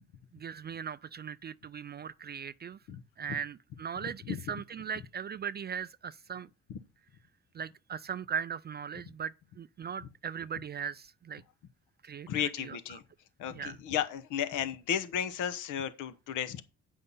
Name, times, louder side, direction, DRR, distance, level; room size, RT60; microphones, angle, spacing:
voice 1, 0.3-2.8 3.2-6.5 7.5-11.4 12.0-12.8 13.5-13.8, right 7 dB, 35° right, 0.4 m, -39 dB
voice 2, 12.3-13.0 13.4-16.6, left 9 dB, 90° left, 0.9 m, -33 dB
8.5 x 5.5 x 5.5 m
cardioid pair, 90°, 30 cm